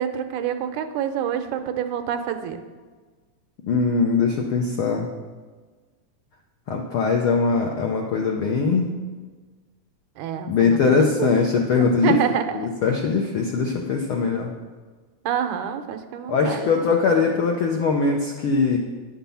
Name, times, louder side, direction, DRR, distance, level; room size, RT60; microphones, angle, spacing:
voice 1, 0.0-2.6 10.2-11.3 11.8-12.7 15.2-16.7, right 9 dB, 90° right, 7 dB, 2.3 m, -27 dB
voice 2, 3.6-5.1 6.7-8.9 10.5-12.2 12.6-14.5 16.3-18.8, left 4 dB, 80° left, 1 dB, 1.2 m, -21 dB
10.0 x 5.8 x 6.9 m, 1.4 s
omnidirectional pair, 3.4 m